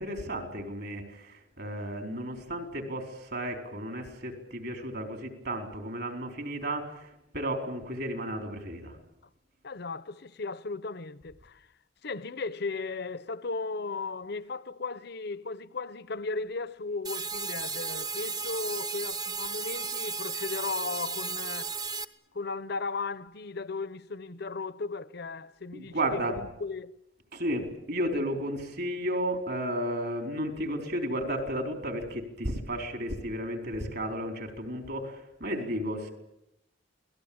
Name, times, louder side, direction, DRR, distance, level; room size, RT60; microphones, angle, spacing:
voice 1, 0.0-9.0 25.7-26.5 27.3-36.1, right 1 dB, 55° right, 4.5 m, -33 dB
voice 2, 9.6-11.7 12.0-21.8 22.3-27.0, left 4 dB, 55° left, 0.9 m, -36 dB
sound 1, 17.0-22.0, right 5 dB, 20° right, 1.0 m, -34 dB
28.5 x 19.0 x 8.8 m
head